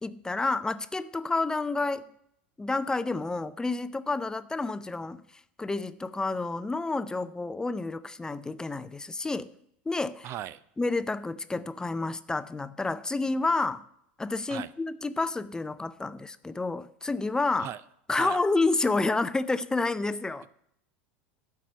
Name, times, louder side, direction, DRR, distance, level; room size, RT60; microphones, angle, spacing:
voice 1, 0.0-2.0 2.6-5.2 5.6-9.5 9.9-10.3 10.8-13.8 14.2-17.7 18.1-20.5, left 3 dB, 10° left, 0.5 m, -29 dB
voice 2, 10.2-10.6 14.5-14.7 17.6-17.8 18.2-18.4, right 12 dB, 50° right, 0.5 m, -37 dB
12.0 x 4.7 x 6.9 m
hypercardioid pair, 95°, 6 cm